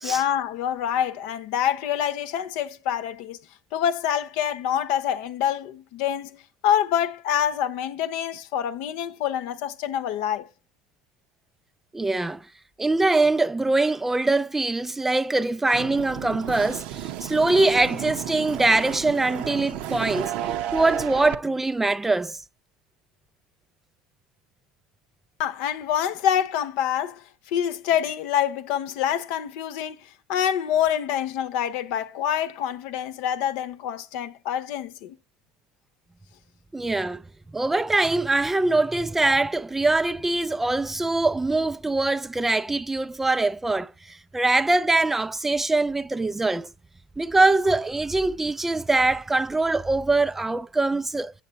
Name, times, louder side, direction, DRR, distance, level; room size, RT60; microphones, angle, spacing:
voice 1, 0.0-3.4 3.7-10.5 25.4-30.0 30.3-35.2, left 9 dB, 65° left, 0.8 m, -26 dB
voice 2, 11.9-12.5 12.8-20.3 20.7-22.4 36.7-37.2 37.5-46.7 47.2-51.3, right 2 dB, 10° right, 0.3 m, -23 dB
sound 1, 15.7-21.3, right 11 dB, 60° right, 0.7 m, -32 dB
7.8 x 7.5 x 4.1 m
hypercardioid pair, 75°, 2 cm